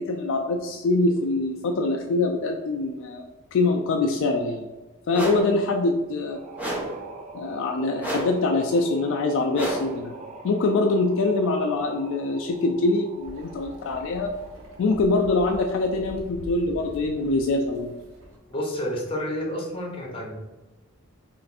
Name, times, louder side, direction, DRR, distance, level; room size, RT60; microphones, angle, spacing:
voice 1, 0.0-3.2 3.5-4.7 5.1-6.4 7.3-10.1 10.4-14.3 14.8-17.9, left 3 dB, 60° left, 2 dB, 0.3 m, -24 dB
sound 1, 5.1-5.6 6.6-7.1 8.0-8.5 9.5-10.0, right 1 dB, 5° right, 0.7 m, -30 dB
sound 2, 6.2-16.0, right 4 dB, 35° right, 0.4 m, -45 dB
sound 3, 13.2-18.4, equal, 70° right, 0.9 m, -44 dB
voice 2, 18.5-20.4, equal, 25° left, -2 dB, 0.9 m, -30 dB
3.2 x 2.5 x 4.0 m, 1.1 s
head